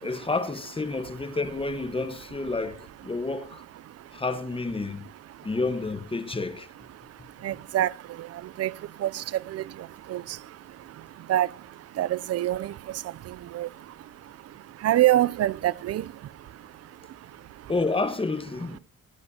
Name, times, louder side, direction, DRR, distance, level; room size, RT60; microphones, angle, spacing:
voice 1, 0.0-3.6 4.1-5.0 5.4-6.7 17.7-18.8, left 3 dB, 20° left, 1.3 m, -29 dB
voice 2, 7.4-7.9 8.6-8.7 9.0-9.1 9.5-9.6 10.1-10.2 11.3-11.5 12.0-12.7 13.5-13.7 14.8-16.0, right 13 dB, 55° right, 0.5 m, -23 dB
17.0 x 9.4 x 2.8 m
cardioid pair, 90°, 30 cm